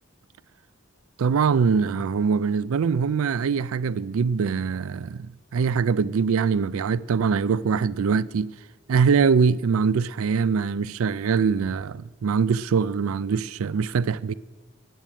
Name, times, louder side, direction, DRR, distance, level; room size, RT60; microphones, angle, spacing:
voice 1, 1.2-8.5 8.9-14.3, right 5 dB, 75° right, 0.4 m, -23 dB
10.5 x 8.4 x 9.0 m
head